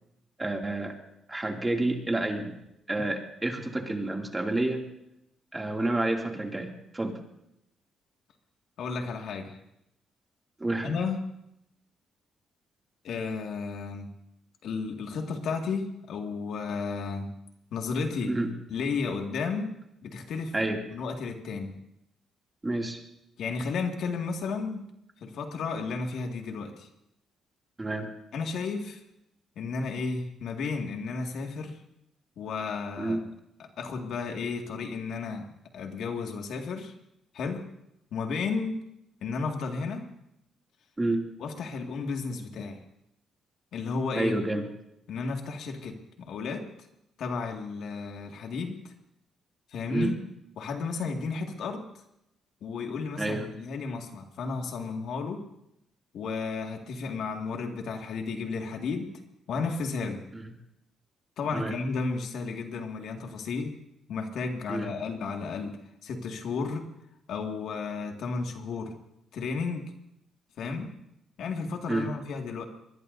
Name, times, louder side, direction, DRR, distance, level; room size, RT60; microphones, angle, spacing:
voice 1, 0.4-1.0 1.3-2.5 2.9-4.8 5.5-7.2 10.6-10.9 18.3-18.5 20.5-20.8 22.6-23.0 27.8-28.1 33.0-33.2 41.0-41.3 44.1-44.7 49.9-50.1 53.2-53.5 60.3-60.5 61.5-61.7 64.7-64.9 71.9-72.1, right 2 dB, 15° right, 1 dB, 2.6 m, -29 dB
voice 2, 8.8-9.6 10.8-11.2 13.0-14.1 14.6-17.3 17.7-18.4 18.7-19.7 20.0-20.5 20.9-21.7 23.4-24.8 25.2-26.9 28.3-29.0 29.6-31.8 32.4-33.2 33.8-35.4 35.7-36.9 37.3-37.7 38.1-38.8 39.2-40.1 41.4-42.8 43.7-44.4 45.1-46.7 47.2-48.9 49.7-50.1 50.6-51.8 52.6-55.4 56.1-59.1 59.5-60.2 61.4-63.7 64.1-65.8 66.0-66.9 67.3-68.9 69.3-69.8 70.6-70.9 71.4-72.6, left 4 dB, 70° left, 3 dB, 2.1 m, -33 dB
23.5 x 21.0 x 2.7 m, 0.82 s
cardioid pair, 90°, 0 cm